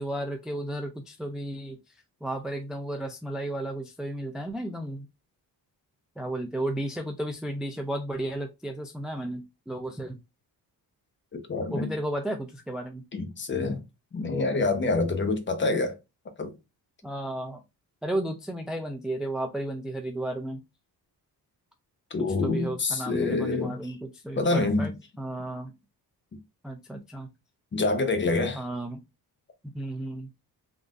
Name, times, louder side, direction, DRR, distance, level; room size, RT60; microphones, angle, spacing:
voice 1, 0.0-5.1 6.2-10.2 11.7-13.0 17.0-17.6 18.0-20.6 22.2-25.7 26.6-27.3 28.5-29.0 29.7-30.3, right 1 dB, ahead, 0.3 m, -33 dB
voice 2, 11.3-11.9 13.1-13.8 14.1-16.0 16.4-16.5 22.1-23.7 24.4-24.9 27.7-28.6, left 3 dB, 30° left, 0.7 m, -26 dB
3.8 x 2.5 x 2.4 m
cardioid pair, 115°, 38 cm